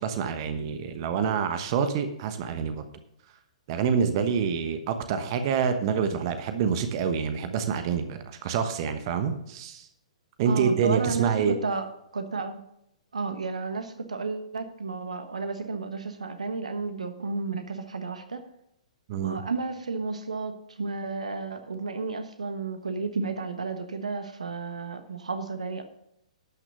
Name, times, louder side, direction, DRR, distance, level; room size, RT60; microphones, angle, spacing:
voice 1, 0.0-2.8 3.7-9.9 10.4-11.5 19.1-19.4, right 6 dB, 40° right, 8 dB, 1.1 m, -27 dB
voice 2, 10.4-12.6 13.1-18.4 19.2-25.8, right 4 dB, 70° right, 8 dB, 1.2 m, -32 dB
12.0 x 6.1 x 6.6 m, 0.79 s
figure-of-eight pair, 115°, 4 cm